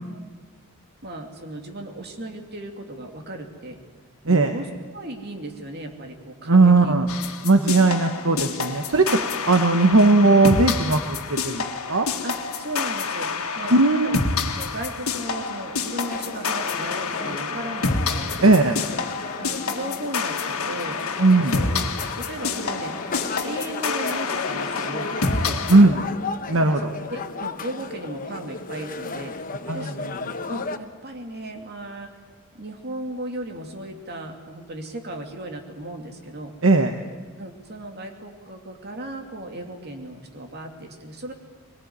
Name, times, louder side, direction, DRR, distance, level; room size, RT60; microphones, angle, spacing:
voice 1, 1.0-3.8 4.2-6.9 9.1-9.3 12.2-14.1 14.5-18.6 19.4-21.0 21.4-21.8 22.1-23.0 23.4-26.1 26.8-29.3 29.7-30.0 30.5-32.1 32.5-36.5 37.4-41.3, right 1 dB, 50° right, 3 dB, 2.7 m, -36 dB
voice 2, 6.5-7.1 7.4-9.0 9.5-12.1 13.7-14.2 18.4-18.8 21.2-21.5 25.7-26.0 26.5-26.9 29.7-30.1 36.6-36.9, right 2 dB, 65° right, 6 dB, 1.2 m, -17 dB
sound 1, 7.1-25.8, left 4 dB, 85° left, 1.9 m, -28 dB
sound 2, 16.1-30.8, left 4 dB, 40° left, 1.0 m, -34 dB
22.0 x 19.0 x 9.7 m, 1.4 s
head